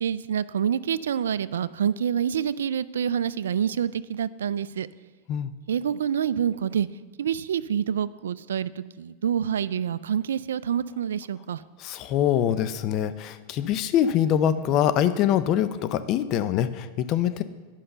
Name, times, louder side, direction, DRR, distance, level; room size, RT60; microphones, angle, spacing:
voice 1, 0.0-4.9 5.7-6.9 7.2-11.6, right 8 dB, 85° right, 18 dB, 0.3 m, -27 dB
voice 2, 11.8-17.4, left 10 dB, 45° left, 13 dB, 0.6 m, -24 dB
10.0 x 5.5 x 6.7 m, 1.4 s
hypercardioid pair, 120°, 0 cm